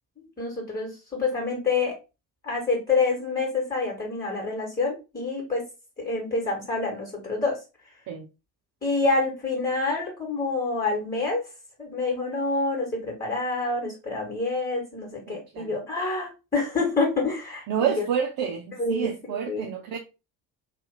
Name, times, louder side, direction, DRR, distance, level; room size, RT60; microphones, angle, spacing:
voice 1, 0.2-1.9 2.4-5.6 6.0-7.6 8.8-11.5 11.8-18.1 18.8-19.7, left 3 dB, 20° left, 1.6 m, -27 dB
voice 2, 15.3-15.8 17.7-20.0, right 8 dB, 45° right, 0.6 m, -29 dB
2.8 x 2.5 x 3.4 m
figure-of-eight pair, 45°, 49 cm